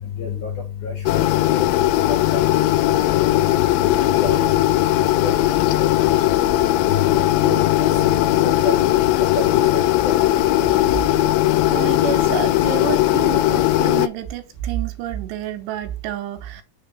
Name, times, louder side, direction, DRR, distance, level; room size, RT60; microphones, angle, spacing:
voice 1, 0.8-1.2 1.5-1.6 2.3-2.4 4.2-4.4 5.6-5.9 7.4-7.9 8.4-8.8 9.4-9.5 9.7-9.8 10.1-10.2, left 4 dB, 70° left, 1.9 m, -27 dB
sound 1, 1.1-14.1, left 14 dB, 90° left, 2.8 m, -18 dB
voice 2, 11.7-16.6, right 11 dB, 80° right, 3.0 m, -29 dB
6.6 x 3.5 x 5.3 m
omnidirectional pair, 5.0 m